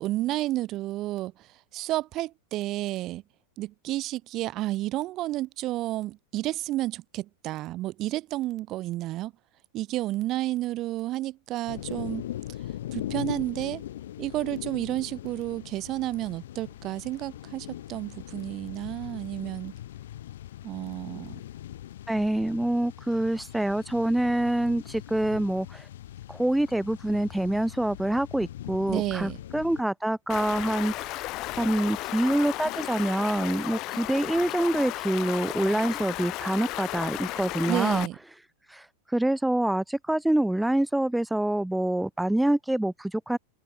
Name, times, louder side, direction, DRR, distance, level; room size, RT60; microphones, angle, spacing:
voice 1, 0.0-1.5 1.7-3.2 3.6-9.3 9.7-12.3 12.9-13.8 14.2-19.7 20.6-21.4 28.9-29.4 37.7-38.1, right 16 dB, 35° right, 3.2 m, -31 dB
sound 1, 11.7-29.8, left 12 dB, 60° left, 3.8 m, -41 dB
voice 2, 22.1-25.9 26.3-31.3 31.6-38.1 38.7-43.4, right 1 dB, 5° right, 1.8 m, -26 dB
Stream, 30.3-38.1, left 19 dB, 40° left, 2.2 m, -34 dB
figure-of-eight pair, 90°, 0 cm